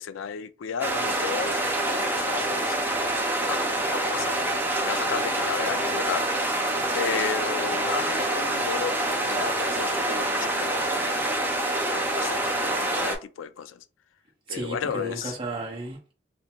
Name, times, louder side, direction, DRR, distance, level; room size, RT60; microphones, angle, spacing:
voice 1, 0.0-3.1 3.4-4.5 4.8-6.3 6.9-10.8 11.8-13.8 14.5-15.3, left 7 dB, 80° left, 0.3 m, -34 dB
sound 1, 0.8-13.1, right 1 dB, 10° right, 0.6 m, -26 dB
voice 2, 14.5-16.1, right 2 dB, 25° right, 0.9 m, -34 dB
3.5 x 2.6 x 2.9 m
head